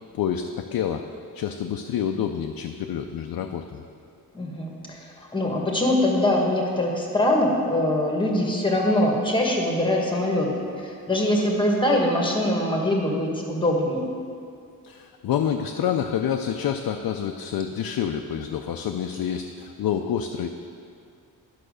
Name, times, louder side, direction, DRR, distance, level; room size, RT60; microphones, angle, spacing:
voice 1, 0.1-1.0 1.3-3.8 14.8-20.5, left 8 dB, 75° left, 4 dB, 0.5 m, -28 dB
voice 2, 4.3-14.1, left 1 dB, 15° left, 0 dB, 1.3 m, -23 dB
11.0 x 5.7 x 6.4 m, 2.4 s
wide cardioid pair, 165°, 36 cm